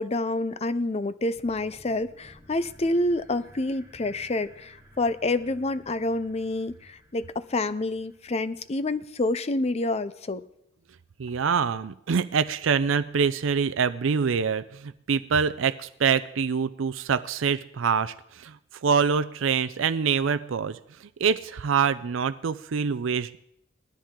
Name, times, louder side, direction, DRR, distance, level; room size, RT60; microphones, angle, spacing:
voice 1, 0.0-10.4, left 2 dB, 35° left, 14 dB, 0.5 m, -28 dB
sound 1, 1.3-9.4, equal, 15° right, 1.7 m, -55 dB
voice 2, 11.2-18.6 18.8-20.8 21.2-23.4, right 6 dB, 80° right, 13 dB, 0.5 m, -25 dB
19.0 x 13.0 x 3.7 m, 0.79 s
head